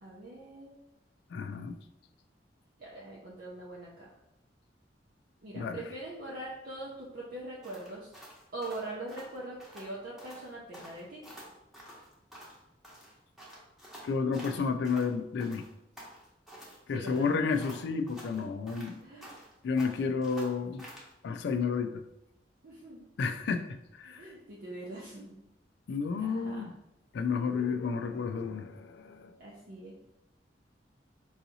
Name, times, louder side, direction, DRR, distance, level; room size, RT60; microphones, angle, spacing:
voice 1, 0.0-0.8 2.8-4.1 5.4-8.1 8.5-11.2 16.9-18.0 19.0-19.3 22.6-23.1 24.0-25.4 26.2-26.7 29.4-29.9, right 2 dB, 55° right, -5 dB, 0.6 m, -43 dB
voice 2, 1.3-1.8 5.5-5.8 14.0-15.7 16.9-19.0 19.6-20.9 21.2-22.0 23.2-24.3 25.9-26.7 27.1-29.4, left 5 dB, 65° left, 8 dB, 0.3 m, -31 dB
sound 1, 7.6-9.9 10.2-10.5 10.7-12.6 12.8-15.1 15.4-16.8 17.1-19.5 19.8-21.1, equal, ahead, 0.9 m, -49 dB
4.7 x 2.7 x 2.7 m, 0.87 s
head